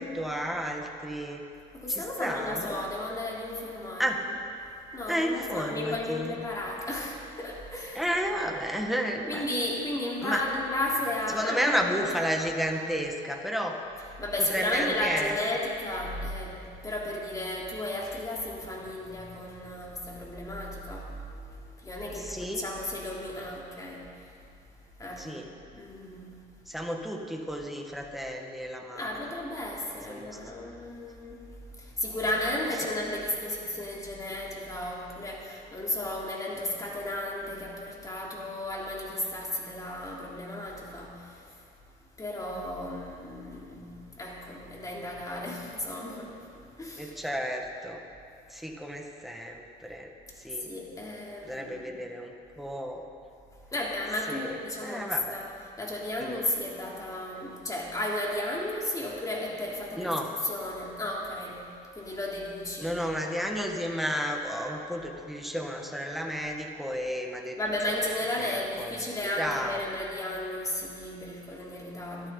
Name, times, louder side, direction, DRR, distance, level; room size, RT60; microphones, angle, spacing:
voice 1, 0.0-1.4 1.9-2.8 4.0-4.2 5.1-6.4 7.9-9.4 10.2-10.4 11.3-13.7 14.5-15.3 22.1-22.6 25.2-25.5 26.7-29.1 30.1-30.4 32.8-32.9 42.5-42.6 47.0-48.0 48.5-50.1 50.4-50.7 51.4-53.0 54.3-54.5 54.8-55.4 56.2-56.4 60.0-60.3 62.8-67.6 68.4-69.0 69.4-69.8, equal, ahead, 1 dB, 1.8 m, -32 dB
voice 2, 1.7-4.1 4.9-8.1 9.3-12.1 14.2-24.3 25.0-25.4 25.7-26.4 28.9-41.6 42.2-47.1 50.6-52.0 53.7-55.5 55.8-60.1 60.4-63.0 67.6-72.3, left 1 dB, 20° left, -3 dB, 3.5 m, -34 dB
23.0 x 13.5 x 4.1 m, 2.5 s
cardioid pair, 110°, 17 cm